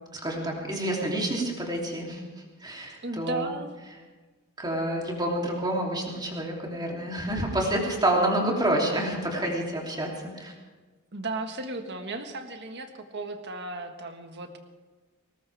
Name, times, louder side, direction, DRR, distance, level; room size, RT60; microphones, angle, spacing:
voice 1, 0.1-2.2 2.6-3.5 4.6-10.5, right 1 dB, 20° right, -1 dB, 3.2 m, -28 dB
voice 2, 3.0-3.7 11.1-14.6, right 2 dB, 55° right, 5 dB, 1.7 m, -35 dB
20.0 x 19.0 x 3.6 m, 1.3 s
head